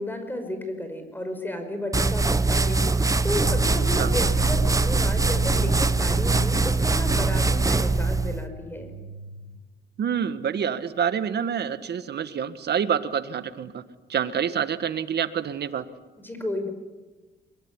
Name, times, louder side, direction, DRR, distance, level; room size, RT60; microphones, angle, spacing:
voice 1, 0.0-8.9 16.2-16.7, left 1 dB, 10° left, 7 dB, 5.6 m, -33 dB
sound 1, 1.9-8.4, right 3 dB, 15° right, 1.1 m, -22 dB
sound 2, 8.7-9.6, right 4 dB, 80° right, 2.3 m, -39 dB
voice 2, 10.0-13.8 14.1-15.9, right 8 dB, 55° right, 11 dB, 1.7 m, -27 dB
22.5 x 22.5 x 9.9 m, 1.2 s
cardioid pair, 90°, 20 cm